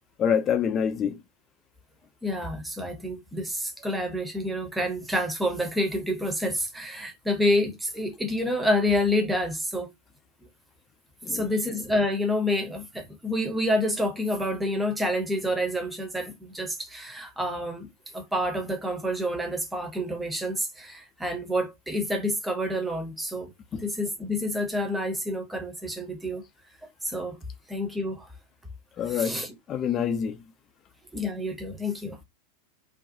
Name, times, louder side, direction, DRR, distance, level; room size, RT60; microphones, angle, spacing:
voice 1, 0.2-1.2 11.2-11.5 23.7-23.8 29.0-29.4 29.7-30.4, left 8 dB, 25° left, 0.4 m, -26 dB
voice 2, 2.2-9.9 11.3-23.5 23.8-26.4 27.0-27.4 27.7-28.3 29.1-29.5 31.1-32.2, left 1 dB, 5° right, 0.7 m, -28 dB
2.5 x 2.2 x 2.7 m
figure-of-eight pair, 90°, 0 cm